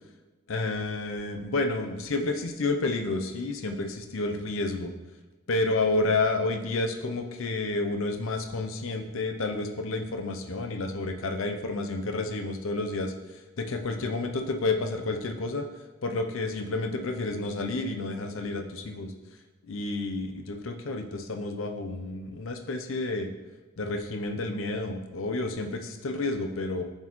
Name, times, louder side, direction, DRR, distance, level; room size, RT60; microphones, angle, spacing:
voice 1, 0.5-4.9 5.5-13.1 13.6-15.7 16.0-19.1 19.7-23.3 23.8-26.8, left 2 dB, 65° left, 5 dB, 0.6 m, -30 dB
9.2 x 4.5 x 3.0 m, 1.2 s
head